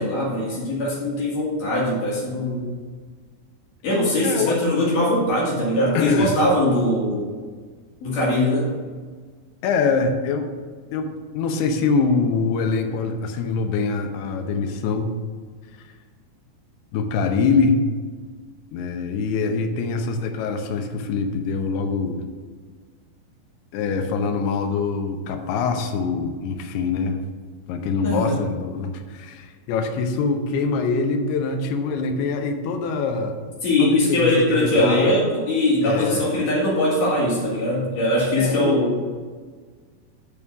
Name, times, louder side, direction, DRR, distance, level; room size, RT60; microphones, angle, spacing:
voice 1, 0.0-2.8 3.8-7.3 8.0-8.7 28.0-28.4 33.6-39.0, left 1 dB, 55° left, -5 dB, 3.0 m, -21 dB
voice 2, 4.2-4.6 5.9-6.4 9.6-10.5 10.9-15.1 15.8-15.9 16.9-17.8 18.7-22.2 23.7-27.2 27.7-33.4 33.8-35.2 35.8-36.3 38.4-38.8, left 4 dB, 75° left, 5 dB, 2.7 m, -24 dB
6.3 x 5.4 x 7.0 m, 1.6 s
omnidirectional pair, 4.9 m